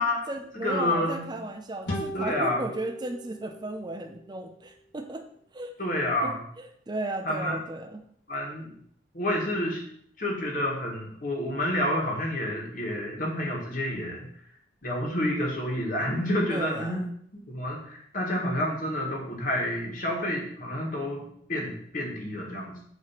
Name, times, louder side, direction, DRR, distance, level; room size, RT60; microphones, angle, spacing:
voice 1, 0.0-5.3 5.5-5.7 6.2-8.0 16.5-17.0, right 2 dB, 25° right, 4 dB, 0.5 m, -35 dB
voice 2, 0.5-1.3 2.1-2.6 5.8-6.4 7.2-7.6 8.3-8.7 9.1-9.8 10.2-14.3 14.8-17.0 17.5-22.8, left 1 dB, 45° left, -1 dB, 1.7 m, -29 dB
sound 1, 1.9-5.2, equal, 80° left, 1.8 m, -39 dB
7.4 x 3.1 x 5.8 m, 0.67 s
head